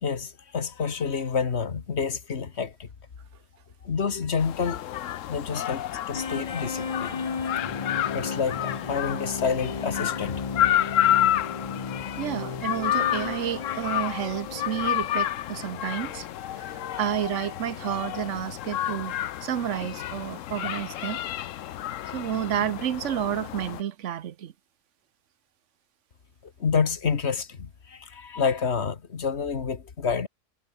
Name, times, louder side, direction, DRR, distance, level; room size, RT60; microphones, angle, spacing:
voice 1, 0.0-2.9 3.8-4.8 5.3-7.2 8.1-10.4 26.6-30.3, left 6 dB, 60° left, 1.7 m, -28 dB
sound 1, 4.4-23.8, left 12 dB, 80° left, 1.1 m, -30 dB
sound 2, 6.1-17.0 17.6-17.8, left 5 dB, 30° left, 0.8 m, -35 dB
voice 2, 12.2-16.3 16.6-16.7 17.0-19.1 19.4-21.2 22.1-24.5, right 10 dB, 70° right, 1.1 m, -30 dB
omnidirectional pair, 1.3 m